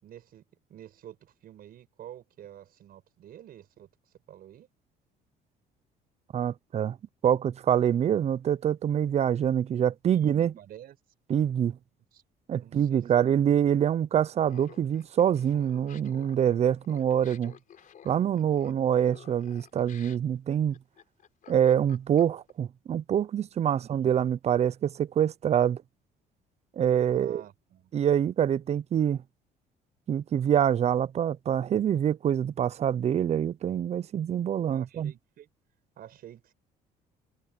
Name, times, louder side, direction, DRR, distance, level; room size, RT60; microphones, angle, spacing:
voice 1, 0.0-3.9 4.3-4.7 10.1-11.0 12.1-12.2 12.6-13.2 23.7-24.1 27.1-27.9 34.7-35.5 36.0-36.5, right 11 dB, 60° right, 5.5 m, -49 dB
voice 2, 6.3-7.0 7.2-10.5 11.3-11.8 12.5-17.5 18.0-20.7 21.5-25.8 26.8-27.4 27.9-29.2 30.1-35.1, right 9 dB, 40° right, 0.5 m, -25 dB
Laughter, 14.4-22.5, left 9 dB, 50° left, 4.3 m, -53 dB
cardioid pair, 110°, 17 cm